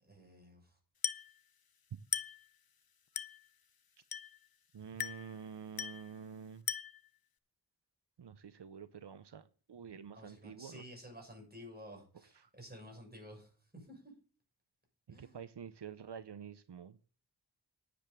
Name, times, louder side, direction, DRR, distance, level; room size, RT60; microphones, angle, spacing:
voice 1, 0.0-0.8 10.1-14.1 15.1-15.4, equal, 25° right, 1 dB, 6.8 m, -53 dB
Glass, 1.0-1.4 2.1-2.5 3.2-3.5 4.1-4.5 5.0-5.4 5.8-6.1 6.7-7.1, left 7 dB, 60° left, 0.7 m, -39 dB
voice 2, 4.7-6.7 8.2-10.8 12.3-12.5 15.1-17.0, right 7 dB, 85° right, 13 dB, 0.7 m, -48 dB
10.5 x 7.7 x 6.7 m, 0.39 s
wide cardioid pair, 50°, 40 cm